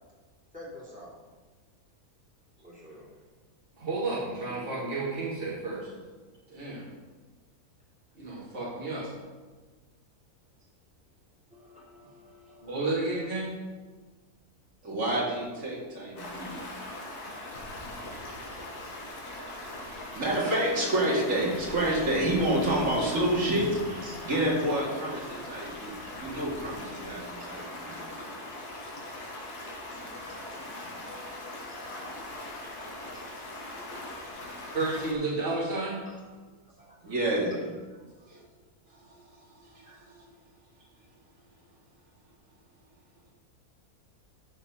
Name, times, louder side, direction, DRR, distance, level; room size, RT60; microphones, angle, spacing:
voice 1, 0.5-1.2 2.6-3.1 4.5-5.0 11.5-12.8 27.4-27.5 30.3-30.4 30.7-32.7 33.0-33.2 33.5-34.5 36.0-36.2 36.8-37.0, left 1 dB, 5° right, -6 dB, 2.7 m, -52 dB
voice 2, 3.8-5.9 6.5-6.9 8.1-9.1 12.6-13.5 34.7-36.0, right 3 dB, 35° right, -8 dB, 2.8 m, -31 dB
voice 3, 14.8-16.5 20.1-28.0 37.0-37.6 38.2-38.4 38.9-40.3, right 1 dB, 55° right, -4 dB, 2.7 m, -29 dB
Stream, 16.2-35.1, left 1 dB, 85° left, 1.9 m, -41 dB
12.5 x 4.3 x 5.4 m, 1.4 s
omnidirectional pair, 1.6 m